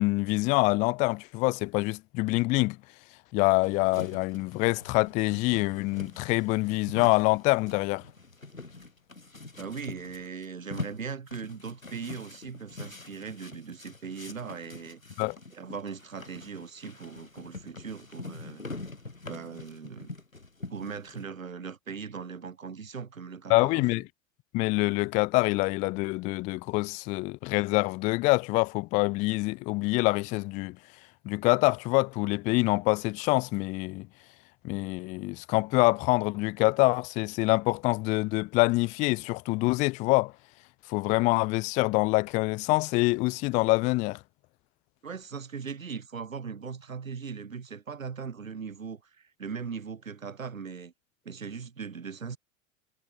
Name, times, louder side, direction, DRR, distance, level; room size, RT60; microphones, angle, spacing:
voice 1, 0.0-2.8 3.3-8.0 15.2-15.4 23.5-24.0 24.5-30.8 31.2-34.1 34.6-40.3 40.9-44.2, left 24 dB, 20° left, 0.3 m, -25 dB
sound 1, 3.6-21.2, left 3 dB, 90° left, 1.8 m, -44 dB
voice 2, 9.6-15.2 15.5-18.6 19.3-20.1 20.7-23.8 45.0-50.9 51.2-52.4, right 6 dB, 85° right, 1.2 m, -39 dB
figure-of-eight pair, 80°, 39 cm